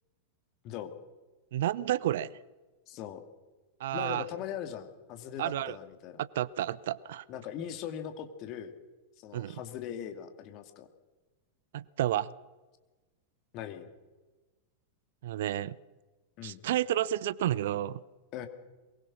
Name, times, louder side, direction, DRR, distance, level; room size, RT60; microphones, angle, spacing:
voice 1, 1.5-2.3 3.8-4.2 5.4-5.8 6.3-7.2 9.3-9.6 11.7-12.3 15.2-15.7 16.4-18.0, right 12 dB, 55° right, 21 dB, 0.6 m, -30 dB
voice 2, 2.9-3.2 3.9-6.2 7.3-8.7 9.2-10.9 13.5-13.9 16.4-16.6 18.3-18.5, left 9 dB, 40° left, 7 dB, 2.4 m, -40 dB
23.0 x 21.0 x 6.3 m, 1.2 s
figure-of-eight pair, 90°, 0 cm